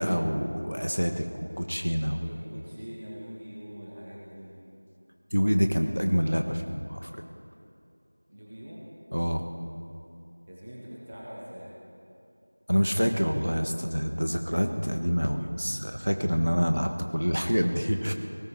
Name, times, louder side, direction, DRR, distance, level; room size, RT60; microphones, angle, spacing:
voice 1, 0.0-2.2 5.3-7.2 9.1-9.5 12.7-18.1, equal, 75° right, 5 dB, 1.5 m, -27 dB
voice 2, 2.1-4.6 8.3-8.8 10.5-11.7, equal, 10° right, -5 dB, 0.6 m, -43 dB
18.0 x 16.5 x 4.8 m, 2.7 s
figure-of-eight pair, 180°, 0 cm